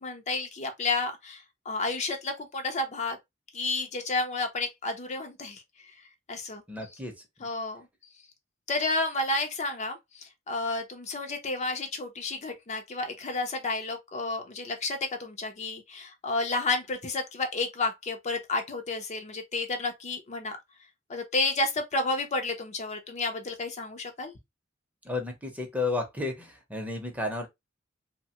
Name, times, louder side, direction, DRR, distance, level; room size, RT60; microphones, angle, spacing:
voice 1, 0.0-3.2 3.5-5.9 6.3-6.6 7.4-7.9 8.7-20.6 21.1-24.3, left 3 dB, 35° left, 0.5 m, -31 dB
voice 2, 6.7-7.1 25.0-27.5, left 3 dB, 10° right, 0.6 m, -32 dB
3.1 x 2.1 x 2.8 m
head